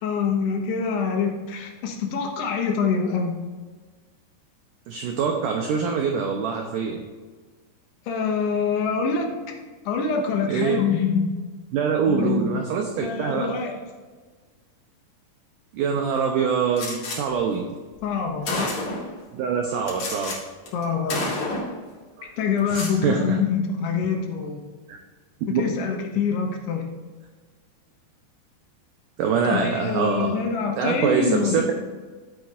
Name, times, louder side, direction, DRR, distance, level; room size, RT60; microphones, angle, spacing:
voice 1, 0.0-3.4 8.1-9.4 9.9-11.3 12.1-12.6 13.0-13.8 18.0-18.7 20.7-21.4 22.4-24.6 25.6-26.8 29.4-31.7, left 5 dB, 90° left, 2 dB, 3.3 m, -25 dB
voice 2, 4.9-7.0 10.5-10.8 11.7-13.5 15.7-17.7 19.3-20.5 22.2-22.3 22.7-23.4 24.9-25.0 25.5-25.6 29.2-30.4 30.8-31.7, right 6 dB, 80° right, 2 dB, 1.9 m, -24 dB
Gunshot gunfire, 16.8-17.2 18.0-18.1 18.5-19.1 19.9-20.4 20.7-20.8 21.1-21.8 22.6-23.0, left 2 dB, 50° left, 2.9 m, -29 dB
13.5 x 8.1 x 2.5 m, 1.4 s
omnidirectional pair, 4.6 m